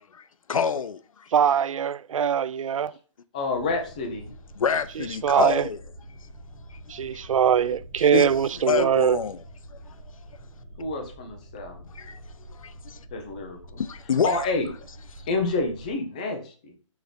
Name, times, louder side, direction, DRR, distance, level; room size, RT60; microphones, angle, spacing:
voice 1, 0.1-1.3 4.6-5.8 6.7-6.8 7.1-7.3 8.0-9.4 9.9-10.0 11.9-12.2 12.5-13.0 13.8-14.4, left 7 dB, 85° left, 0.5 m, -28 dB
voice 2, 1.3-2.9 5.2-5.6 6.9-9.2, right 8 dB, 75° right, 0.4 m, -22 dB
voice 3, 3.3-4.3 8.7-9.0 10.8-11.9 13.1-13.8 14.2-14.7 15.2-16.7, left 3 dB, 15° left, 0.6 m, -29 dB
sound 1, 3.5-15.9, right 1 dB, 5° right, 1.0 m, -46 dB
6.4 x 3.0 x 5.0 m
hypercardioid pair, 175°, 17 cm